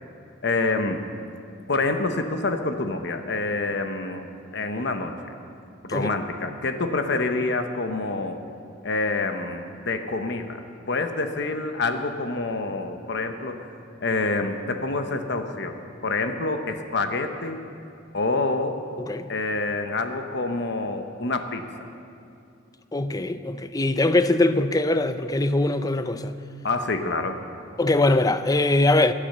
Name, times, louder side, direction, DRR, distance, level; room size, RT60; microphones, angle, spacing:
voice 1, 0.4-1.0 1.7-5.3 5.8-8.4 8.8-13.7 14.0-17.6 18.1-18.8 19.3-21.9 26.6-27.4, left 3 dB, 65° left, 1.1 m, -27 dB
voice 2, 22.9-26.3 27.8-29.1, left 2 dB, 20° left, 0.5 m, -22 dB
23.5 x 8.6 x 6.8 m
head